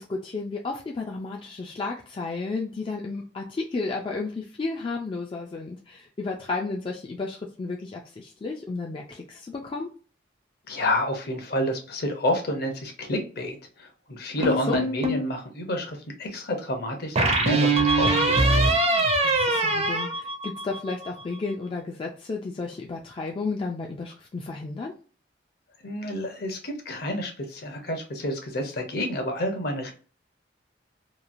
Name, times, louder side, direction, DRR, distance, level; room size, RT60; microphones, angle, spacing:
voice 1, 0.0-9.9 14.4-14.8 19.2-24.9, left 3 dB, 30° left, 0 dB, 0.3 m, -33 dB
voice 2, 10.7-18.5 25.8-29.9, left 1 dB, 55° left, 4 dB, 0.7 m, -29 dB
sound 1, 14.4-15.3 17.2-20.9, right 2 dB, 35° right, 0.5 m, -22 dB
3.0 x 2.3 x 2.5 m, 0.39 s
head